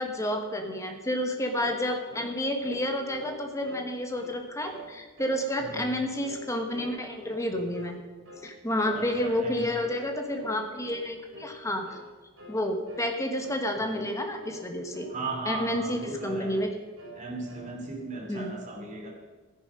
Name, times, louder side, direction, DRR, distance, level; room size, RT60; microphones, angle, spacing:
voice 1, 0.0-8.0 8.4-12.0 12.5-15.1 15.4-16.7 18.3-18.5, left 1 dB, 15° left, 4 dB, 1.3 m, -30 dB
sound 1, 1.6-1.8 2.1-2.3 2.6-3.8 4.1-4.4 4.6-4.9 5.2-5.4 5.7-6.4 6.7-7.5 7.7-8.0 8.2-8.5 8.8-9.0 9.3-9.5 9.8-10.0 10.3-10.5 10.8-11.0 11.3-11.6 11.8-12.0 12.4-12.6 12.9-13.1 13.4-13.6 13.9-14.6 14.9-15.7 15.9-16.7 17.0-17.7, left 1 dB, 75° right, 3.9 m, -46 dB
voice 2, 8.9-9.7 15.1-16.5 17.2-19.1, right 3 dB, 35° right, 0 dB, 2.8 m, -37 dB
14.0 x 10.5 x 5.4 m, 1.3 s
head